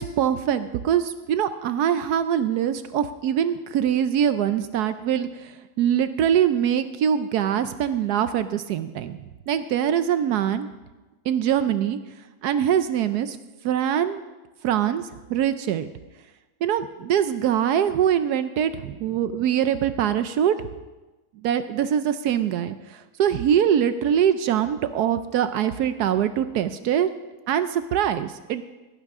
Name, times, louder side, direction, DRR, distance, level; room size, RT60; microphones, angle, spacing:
voice 1, 0.0-9.2 9.5-10.7 11.3-12.0 12.4-13.4 13.6-14.2 14.6-15.0 15.3-15.9 16.6-20.5 21.4-27.1 27.5-28.6, right 9 dB, 70° right, 12 dB, 0.9 m, -23 dB
17.5 x 11.0 x 3.6 m, 1.1 s
omnidirectional pair, 2.1 m